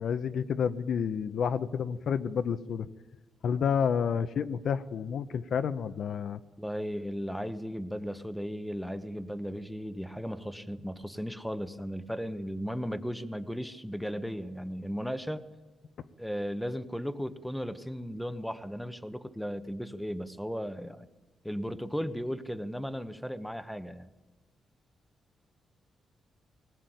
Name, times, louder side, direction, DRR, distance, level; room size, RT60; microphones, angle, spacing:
voice 1, 0.0-2.9 3.4-6.4, left 7 dB, 60° left, 12 dB, 0.8 m, -30 dB
voice 2, 6.6-15.4 16.2-21.1 21.4-24.1, equal, ahead, 11 dB, 1.0 m, -36 dB
20.0 x 20.0 x 9.3 m, 1.2 s
wide cardioid pair, 150°, 0 cm